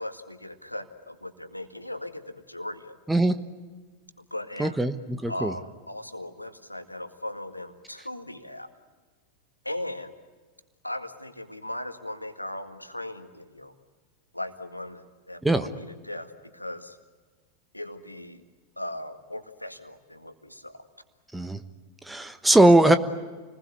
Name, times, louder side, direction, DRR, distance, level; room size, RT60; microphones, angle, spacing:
voice 1, 0.0-3.0 4.2-4.8 5.3-8.7 9.6-10.1 10.8-13.7 14.3-17.0 17.7-18.4 18.8-20.8, left 1 dB, 85° left, 9 dB, 1.9 m, -38 dB
voice 2, 4.6-5.5 15.4-15.7 21.3-21.6 22.1-23.0, right 1 dB, 5° right, 10 dB, 1.2 m, -20 dB
29.5 x 20.5 x 9.7 m, 1.4 s
figure-of-eight pair, 90°, 0 cm